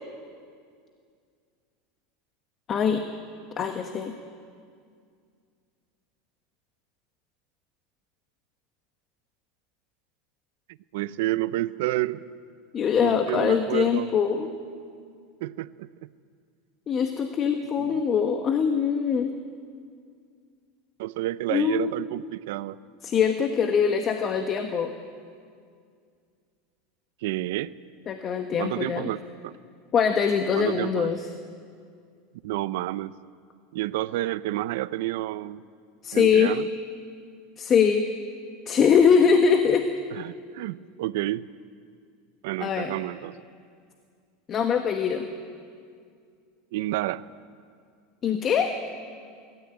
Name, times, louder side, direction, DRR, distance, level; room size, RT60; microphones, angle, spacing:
voice 1, 2.7-3.0 3.6-4.1 12.7-14.5 16.9-19.4 21.5-21.9 23.0-24.9 28.1-29.1 29.9-31.2 36.0-36.5 37.6-38.1 38.7-39.9 42.6-42.9 44.5-45.3 48.2-48.7, left 7 dB, 30° left, 6 dB, 1.2 m, -22 dB
voice 2, 10.9-12.2 13.0-14.1 15.4-15.9 17.8-17.9 21.0-22.8 27.2-27.7 28.6-29.6 30.6-31.1 32.4-33.2 33.7-35.6 36.1-36.7 40.1-41.5 42.4-43.4 46.7-47.2, right 16 dB, 75° right, 17 dB, 0.6 m, -30 dB
23.0 x 13.5 x 8.9 m, 2.2 s
supercardioid pair, 135°, 0 cm